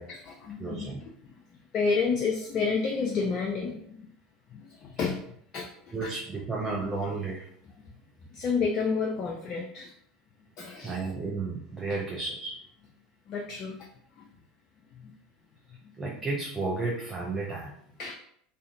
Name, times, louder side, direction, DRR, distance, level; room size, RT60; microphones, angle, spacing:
voice 1, 0.1-1.3 1.7-4.1 4.5-5.7 6.0-6.1 8.3-9.9 10.6-11.0 13.3-13.8 14.2-14.3 15.0-15.1 18.0-18.1, left 5 dB, 40° left, 0 dB, 0.4 m, -30 dB
voice 2, 0.6-1.0 5.9-7.5 10.8-12.5 16.0-17.8, right 3 dB, 20° right, -4 dB, 0.5 m, -32 dB
2.5 x 2.4 x 2.6 m, 0.67 s
figure-of-eight pair, 75°, 0 cm